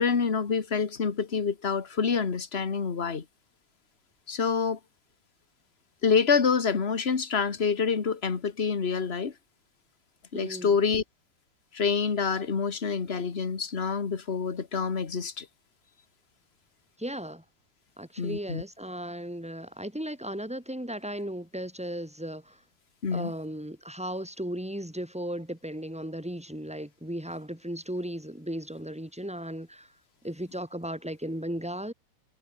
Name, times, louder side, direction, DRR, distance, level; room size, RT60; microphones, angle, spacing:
voice 1, 0.0-3.2 4.3-4.8 6.0-9.3 10.3-11.0 11.7-15.5 18.2-18.6 23.0-23.3, left 5 dB, 30° left, 1.7 m, -27 dB
voice 2, 10.3-10.8 17.0-17.4 18.0-22.6 23.1-29.9 30.2-31.9, right 1 dB, 5° right, 3.1 m, -36 dB
omnidirectional pair, 2.4 m